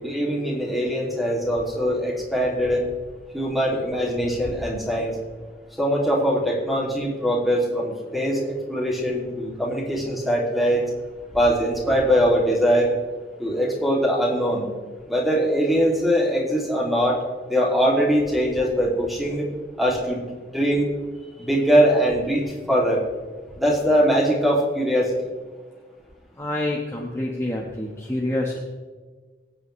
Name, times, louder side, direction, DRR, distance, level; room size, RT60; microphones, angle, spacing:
voice 1, 0.0-2.9 3.3-5.2 5.8-10.8 11.3-12.9 13.4-14.6 15.1-17.2 17.5-19.5 19.8-20.3 20.5-20.9 21.4-22.4 22.7-23.0 23.6-25.1, equal, ahead, -3 dB, 2.5 m, -22 dB
voice 2, 26.4-28.6, left 1 dB, 15° left, -2 dB, 1.3 m, -27 dB
22.0 x 8.6 x 3.2 m, 1.4 s
head